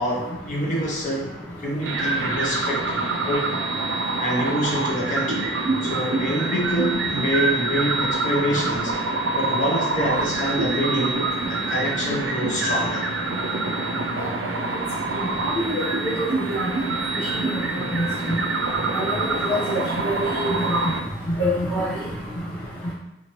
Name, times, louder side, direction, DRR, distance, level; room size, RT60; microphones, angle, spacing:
voice 1, 0.0-3.6 4.2-5.5 5.8-8.9 9.4-13.1, equal, 45° left, -3 dB, 0.8 m, -26 dB
sound 1, 1.8-21.0, right 3 dB, 75° right, 0.4 m, -26 dB
voice 2, 17.9-18.3 18.9-20.9 21.4-21.9, equal, 80° left, -10 dB, 1.0 m, -25 dB
2.8 x 2.5 x 2.9 m, 0.96 s
head